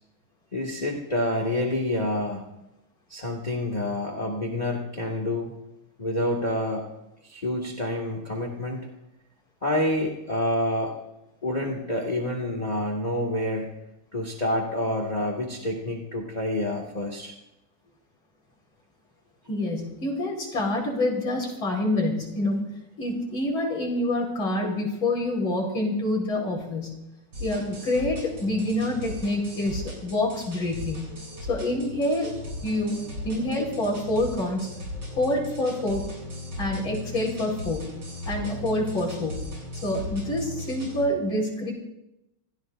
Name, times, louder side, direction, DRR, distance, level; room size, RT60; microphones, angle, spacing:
voice 1, 0.5-2.4 3.1-5.5 6.0-6.9 7.2-8.9 9.6-10.9 11.4-13.7 14.1-17.3, left 1 dB, 20° left, 1 dB, 1.8 m, -28 dB
voice 2, 19.5-22.6 23.0-26.9 27.4-31.1 31.5-33.0 33.2-34.7 35.2-36.1 36.6-37.9 38.3-39.4 39.8-41.7, left 1 dB, 60° left, -1 dB, 5.2 m, -27 dB
sound 1, 27.3-41.0, left 1 dB, 60° right, 8.8 m, -37 dB
27.5 x 16.5 x 2.6 m, 0.85 s
omnidirectional pair, 2.4 m